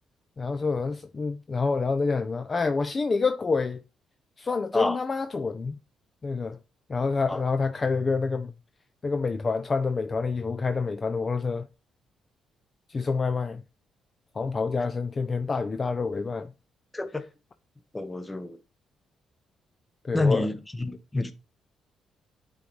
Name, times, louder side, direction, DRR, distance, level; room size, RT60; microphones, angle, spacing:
voice 1, 0.4-3.8 4.4-5.8 6.2-6.6 6.9-8.5 9.0-11.7 12.9-13.6 14.3-16.5 20.0-20.5, left 4 dB, 35° left, 0.4 m, -27 dB
voice 2, 16.9-17.2 17.9-18.6 20.1-21.3, left 2 dB, 15° left, 0.8 m, -28 dB
8.3 x 3.9 x 3.1 m
cardioid pair, 90°, 0 cm